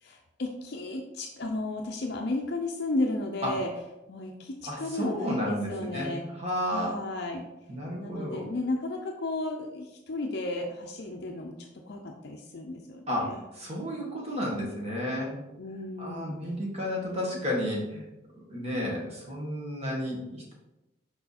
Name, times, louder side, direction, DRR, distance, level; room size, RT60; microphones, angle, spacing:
voice 1, 0.0-3.7 4.1-6.2 6.7-7.4 7.9-13.4 15.6-16.3 17.0-17.6, left 2 dB, 55° left, 2 dB, 0.5 m, -34 dB
voice 2, 4.7-7.0 7.7-8.4 13.1-15.4 16.0-18.1 18.5-20.5, equal, 30° right, -2 dB, 1.6 m, -32 dB
5.5 x 4.6 x 4.2 m, 0.96 s
head